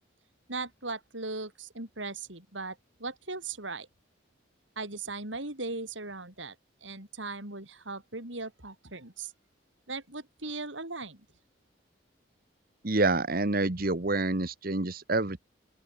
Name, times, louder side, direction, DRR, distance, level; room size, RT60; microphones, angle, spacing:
voice 1, 0.5-3.9 4.8-6.6 6.8-9.3 9.9-11.3, right 3 dB, 80° right, 7.1 m, -38 dB
voice 2, 12.8-15.4, right 2 dB, 50° right, 1.3 m, -27 dB
open air
head